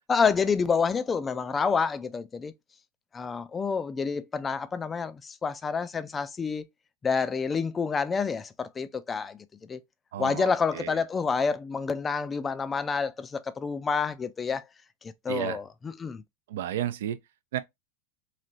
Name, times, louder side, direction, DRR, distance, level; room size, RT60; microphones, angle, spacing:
voice 1, 0.1-2.5 3.1-6.6 7.0-9.4 9.7-9.8 10.2-14.6 15.0-15.6 16.0-16.2, left 5 dB, 20° left, 0.4 m, -28 dB
voice 2, 10.1-11.0 15.3-15.6 16.5-17.2 17.5-17.6, right 11 dB, 65° right, 0.4 m, -32 dB
3.2 x 2.8 x 2.6 m
figure-of-eight pair, 90°, 0 cm